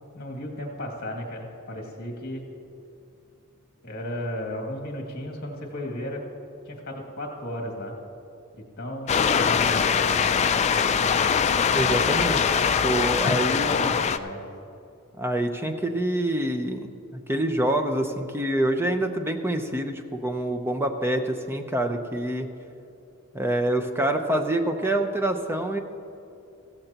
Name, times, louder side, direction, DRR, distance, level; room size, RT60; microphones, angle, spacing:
voice 1, 0.1-2.4 3.8-6.2 6.7-8.0 8.5-10.2 11.6-12.0 13.0-14.4, left 1 dB, 45° left, 0 dB, 2.3 m, -35 dB
sound 1, 9.1-14.2, left 6 dB, 30° left, 0.3 m, -22 dB
voice 2, 11.7-12.6 12.8-13.8 15.2-22.5 23.3-25.8, right 1 dB, 10° right, 6 dB, 0.7 m, -26 dB
16.0 x 14.5 x 2.9 m, 2.7 s
head